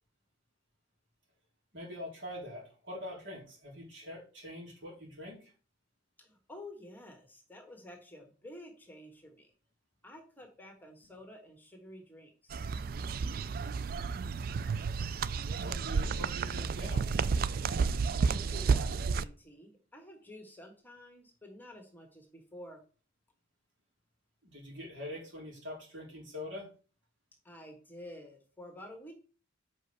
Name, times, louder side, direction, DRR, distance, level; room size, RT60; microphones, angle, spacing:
voice 1, 1.7-5.5 15.5-17.1 24.4-26.7, left 1 dB, 75° right, -3 dB, 3.7 m, -44 dB
voice 2, 6.2-9.5 10.0-12.6 18.2-22.8 27.4-29.1, left 1 dB, 10° left, 2 dB, 1.4 m, -50 dB
sound 1, 12.5-19.2, right 5 dB, 50° right, 0.3 m, -31 dB
5.3 x 5.2 x 6.4 m, 0.37 s
head